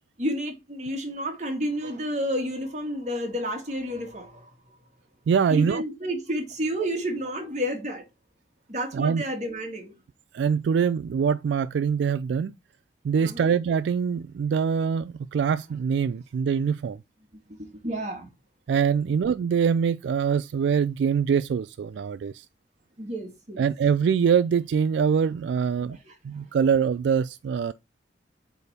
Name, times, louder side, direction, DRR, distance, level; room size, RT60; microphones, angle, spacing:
voice 1, 0.2-4.5 5.5-8.0 8.7-9.9 13.2-13.5 17.3-18.3 23.0-23.6 25.8-26.5, equal, 40° right, 1.9 m, -31 dB
voice 2, 5.3-5.8 8.9-9.2 10.3-12.5 13.0-17.0 18.7-22.5 23.6-26.0 26.2-27.7, right 6 dB, 80° right, 0.3 m, -24 dB
8.0 x 3.5 x 4.2 m
head